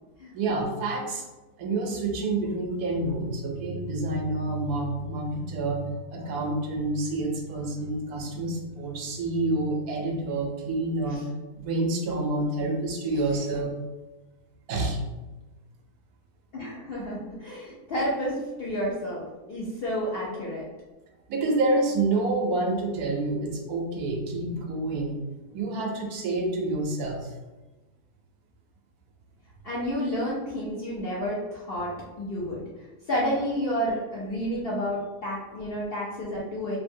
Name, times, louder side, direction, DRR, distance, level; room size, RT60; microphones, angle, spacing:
voice 1, 0.3-1.3 1.6-11.3 11.6-13.8 14.7-15.0 21.3-25.2 25.5-27.3, right 2 dB, 75° right, 1 dB, 1.1 m, -28 dB
voice 2, 16.5-20.6 29.6-31.9 32.2-32.6 33.1-36.8, equal, 60° left, -7 dB, 0.6 m, -30 dB
3.1 x 2.7 x 2.6 m, 1.1 s
omnidirectional pair, 1.6 m